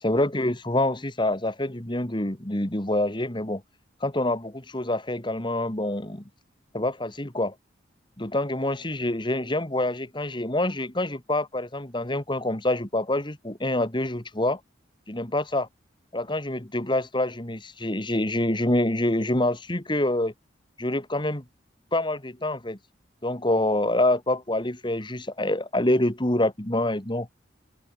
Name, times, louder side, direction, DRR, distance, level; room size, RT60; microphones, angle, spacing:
voice 1, 0.0-3.6 4.0-6.2 6.7-7.5 8.2-14.6 15.1-15.7 16.1-20.3 20.8-21.4 21.9-22.8 23.2-27.3, left 1 dB, 25° left, 2.3 m, -26 dB
open air
head